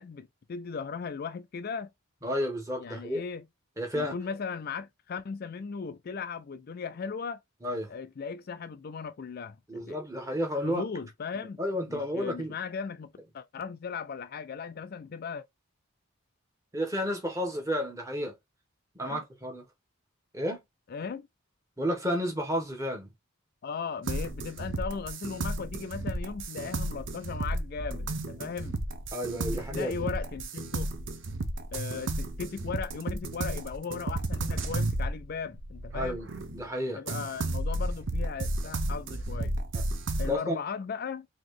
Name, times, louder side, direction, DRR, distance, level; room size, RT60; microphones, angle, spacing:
voice 1, 0.0-1.9 2.8-3.5 3.9-7.4 7.9-10.0 10.6-11.6 11.9-15.4 19.1-19.2 20.9-21.3 23.6-28.8 29.3-30.9 31.7-36.2 36.9-39.5 40.2-41.3, left 5 dB, 45° left, 0.4 m, -37 dB
voice 2, 2.2-3.2 3.8-4.2 7.6-7.9 9.7-10.8 11.6-12.5 16.7-18.3 18.9-19.6 20.3-20.6 21.8-23.1 29.1-30.1 35.9-37.0 39.7-39.8 40.3-40.6, equal, 15° right, 1.2 m, -31 dB
sound 1, 24.1-36.6 37.1-40.3, right 1 dB, 60° right, 0.7 m, -33 dB
4.0 x 2.9 x 3.1 m
head